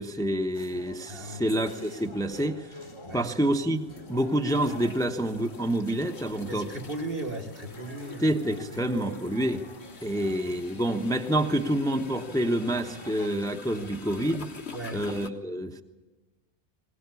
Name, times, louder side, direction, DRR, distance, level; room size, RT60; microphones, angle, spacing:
voice 1, 0.0-2.7 3.1-3.8 4.1-6.7 8.2-9.6 10.0-14.5 14.9-15.8, right 1 dB, 5° left, 5 dB, 0.9 m, -27 dB
sound 1, 0.5-13.3, left 2 dB, 25° left, 1.1 m, -47 dB
voice 2, 1.1-1.5 3.0-3.3 6.5-8.3 8.7-8.8 14.7-15.1, right 1 dB, 55° right, 3 dB, 2.0 m, -36 dB
sound 2, 2.3-2.4 3.8-15.3, left 4 dB, 70° left, 1.7 m, -47 dB
21.0 x 18.5 x 9.6 m, 1.1 s
omnidirectional pair, 1.1 m